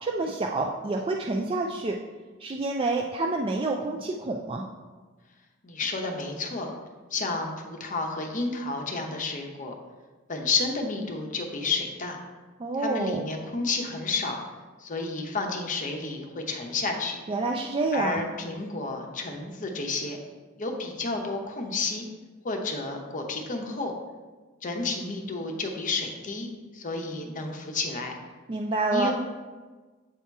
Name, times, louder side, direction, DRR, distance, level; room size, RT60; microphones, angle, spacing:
voice 1, 0.0-2.0 2.4-4.7 12.6-13.2 17.3-18.3 28.5-29.1, right 3 dB, 25° right, 1 dB, 0.3 m, -28 dB
voice 2, 5.6-6.7 7.1-9.7 10.3-12.2 12.8-14.4 14.8-17.2 17.9-20.2 20.6-22.1 22.4-23.9 24.6-26.5 26.7-28.1 28.9-29.1, left 3 dB, 40° left, 2 dB, 0.8 m, -31 dB
8.2 x 2.8 x 4.6 m, 1.3 s
head